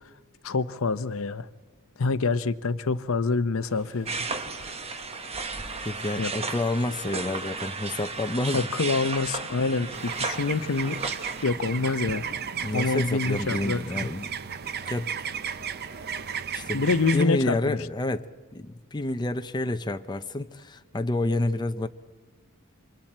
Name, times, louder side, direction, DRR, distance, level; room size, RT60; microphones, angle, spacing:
voice 1, 0.4-1.5 2.0-4.1 6.2-6.3 8.5-11.0 11.4-12.3 12.6-14.1 16.7-17.8, left 4 dB, 70° left, 0.7 m, -26 dB
sound 1, 3.6-16.5, right 1 dB, 75° right, 5.1 m, -48 dB
sound 2, 4.1-11.4, right 4 dB, 30° right, 1.0 m, -34 dB
voice 2, 5.8-8.7 12.6-14.3 14.9-15.1 16.5-21.9, left 2 dB, 20° left, 0.6 m, -29 dB
sound 3, 9.9-17.2, right 8 dB, 50° right, 0.6 m, -34 dB
28.0 x 25.5 x 4.4 m
head